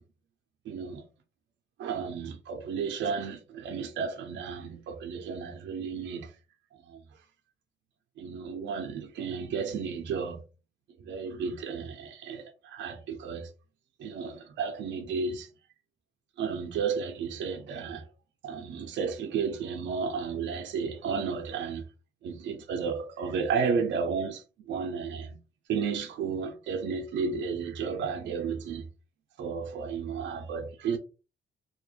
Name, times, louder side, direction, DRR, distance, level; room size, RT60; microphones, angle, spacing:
voice 1, 0.7-1.0 1.8-6.3 6.9-7.0 8.2-10.4 11.1-13.5 14.0-15.5 16.4-18.0 18.4-21.8 22.2-24.4 24.7-25.4 25.7-28.8 29.4-31.0, right 5 dB, 65° right, 0.5 m, -33 dB
2.3 x 2.1 x 3.0 m
cardioid pair, 90°, 20 cm